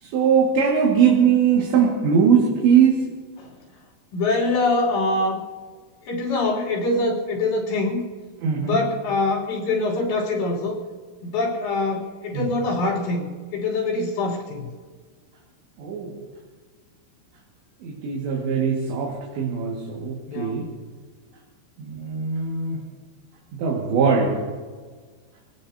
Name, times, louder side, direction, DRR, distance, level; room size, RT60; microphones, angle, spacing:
voice 1, 0.0-3.1 8.4-8.8 12.3-12.5 15.8-16.1 17.8-20.7 21.8-22.8 23.5-24.4, right 7 dB, 75° right, -3 dB, 4.2 m, -20 dB
voice 2, 4.1-5.4 6.1-8.0 8.6-10.8 11.2-14.7 20.3-20.6, left 2 dB, 80° left, -4 dB, 5.4 m, -24 dB
26.5 x 18.0 x 2.8 m, 1.5 s
omnidirectional pair, 5.2 m